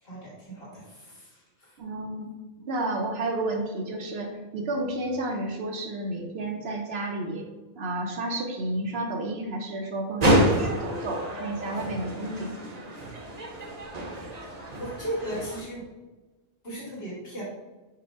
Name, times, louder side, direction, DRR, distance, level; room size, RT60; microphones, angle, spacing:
voice 1, 0.0-1.8 14.8-15.9 16.6-17.4, right 1 dB, 65° left, -6 dB, 1.9 m, -36 dB
voice 2, 1.8-2.3 2.7-7.5 7.8-12.7, right 2 dB, 70° right, 2 dB, 0.9 m, -31 dB
sound 1, 10.2-15.6, right 1 dB, 40° right, 0.8 m, -28 dB
4.8 x 2.1 x 4.6 m, 1.2 s
omnidirectional pair, 1.1 m